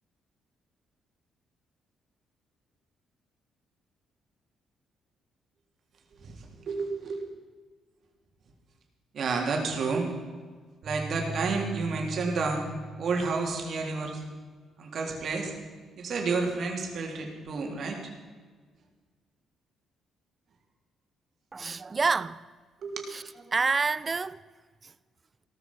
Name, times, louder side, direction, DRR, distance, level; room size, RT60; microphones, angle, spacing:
voice 1, 6.6-7.2 9.1-10.1 10.8-12.7 13.0-14.2 14.8-15.5 16.0-18.1 22.8-23.1, right 4 dB, 60° right, 3.5 m, -30 dB
sound 1, 10.8-13.3, right 3 dB, 75° right, 3.8 m, -39 dB
voice 2, 21.5-22.4 23.1-24.4 24.8-24.9, right 4 dB, 30° right, 0.6 m, -28 dB
17.0 x 13.5 x 5.6 m
cardioid pair, 90°, 0 cm